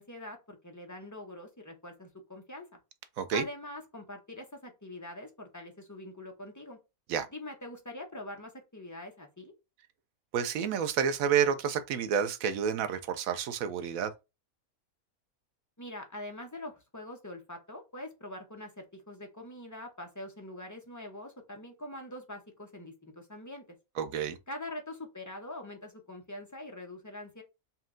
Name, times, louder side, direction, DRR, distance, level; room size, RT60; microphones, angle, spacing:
voice 1, 0.0-2.7 3.3-6.8 7.3-9.5 15.8-23.6 24.5-27.4, left 1 dB, 20° left, 0.5 m, -44 dB
voice 2, 10.3-14.1 24.0-24.4, right 7 dB, 75° right, 1.0 m, -29 dB
4.3 x 2.3 x 3.6 m
omnidirectional pair, 1.5 m